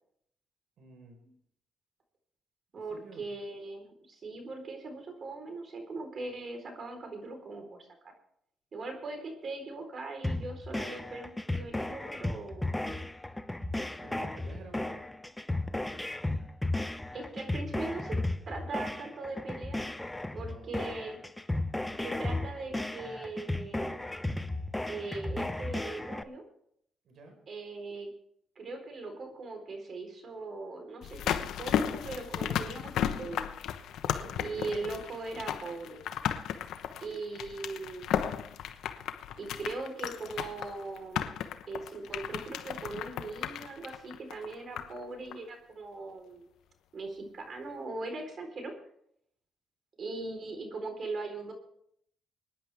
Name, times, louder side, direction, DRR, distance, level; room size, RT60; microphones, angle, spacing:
voice 1, 0.8-1.2 2.9-3.3 12.7-13.0 14.0-15.0 20.5-21.1 27.0-27.4 34.0-34.4, right 3 dB, 70° right, 5 dB, 4.4 m, -51 dB
voice 2, 2.7-8.1 8.7-12.7 17.1-18.2 18.5-19.9 20.3-21.2 22.0-24.0 24.8-26.4 27.5-28.1 28.6-33.5 34.4-36.0 37.0-38.1 39.4-41.3 41.7-46.5 46.9-48.7 50.0-51.5, right 3 dB, 50° right, 5 dB, 4.0 m, -40 dB
sound 1, 10.2-26.2, left 2 dB, 10° left, 0.9 m, -35 dB
sound 2, 31.0-45.0 45.3-45.4, left 9 dB, 80° left, 1.0 m, -35 dB
23.5 x 10.0 x 3.5 m, 0.69 s
cardioid pair, 90°, 0 cm